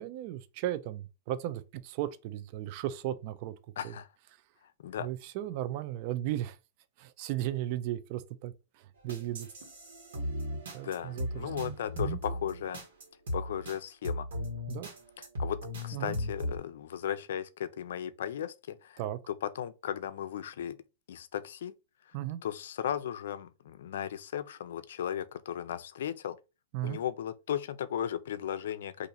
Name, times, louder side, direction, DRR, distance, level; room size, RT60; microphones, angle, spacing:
voice 1, 0.0-3.5 3.8-3.9 5.0-6.6 7.0-8.5 9.0-9.5 10.7-11.5 12.0-12.2 14.7-14.9 15.9-16.2 19.0-19.2 22.1-22.4 26.7-27.0, right 13 dB, 50° right, 0.4 m, -35 dB
voice 2, 3.8-4.1 4.8-5.1 10.8-12.8 13.3-14.3 15.2-19.0 19.3-20.8 21.1-21.7 22.4-26.4 26.8-29.1, left 10 dB, 75° left, 0.4 m, -36 dB
sound 1, 9.1-13.8 14.0-16.6, left 1 dB, 80° right, 1.4 m, -37 dB
2.8 x 2.5 x 4.0 m
hypercardioid pair, 135°, 0 cm